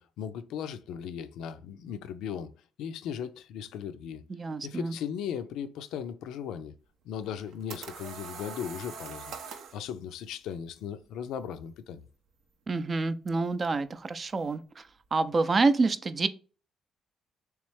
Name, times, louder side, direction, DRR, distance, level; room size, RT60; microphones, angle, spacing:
voice 1, 0.0-2.5 2.8-4.2 4.6-6.7 7.0-9.4 9.7-12.1, left 8 dB, 85° left, 0.4 m, -37 dB
voice 2, 4.3-4.9 12.7-14.8 15.1-16.3, right 3 dB, 35° right, 0.4 m, -27 dB
sound 1, 7.3-9.8, right 6 dB, 85° right, 0.6 m, -42 dB
3.4 x 3.1 x 3.2 m
cardioid pair, 90°, 0 cm